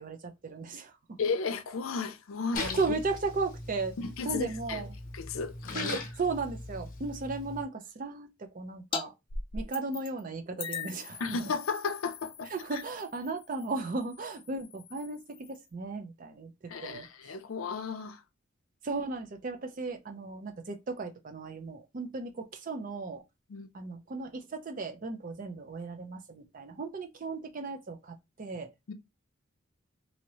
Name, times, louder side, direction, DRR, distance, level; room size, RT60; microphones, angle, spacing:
voice 1, 0.0-1.2 2.6-4.0 4.2-4.9 5.7-9.1 9.5-11.5 12.5-17.3 18.8-23.2 23.7-28.9, right 3 dB, 40° right, 0.4 m, -36 dB
voice 2, 1.2-2.8 4.0-4.8 5.1-5.9 11.2-12.8 16.7-18.2 23.5-23.7 28.9-29.0, left 4 dB, 85° left, 0.5 m, -34 dB
Splash splatter, 2.5-7.6, left 2 dB, 45° left, 0.9 m, -39 dB
sound 1, 8.9-9.0 9.3-10.2 10.6-15.7, left 5 dB, 25° left, 0.4 m, -41 dB
2.8 x 2.7 x 2.9 m
head